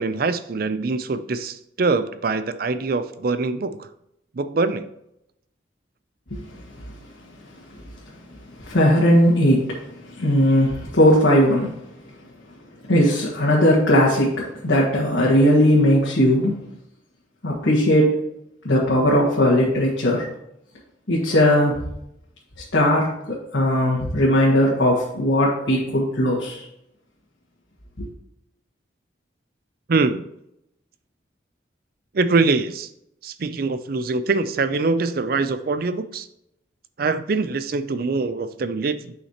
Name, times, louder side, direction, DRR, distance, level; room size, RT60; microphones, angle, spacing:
voice 1, 0.0-3.8 4.4-4.9 29.9-30.2 32.1-32.9 33.2-36.3 37.0-39.1, right 3 dB, 50° right, 12 dB, 0.4 m, -23 dB
voice 2, 8.6-11.7 12.9-16.5 17.4-18.2 18.6-20.3 21.1-21.8 22.7-26.6 28.0-28.1, equal, 80° left, -6 dB, 1.7 m, -18 dB
9.5 x 5.7 x 2.9 m, 0.80 s
head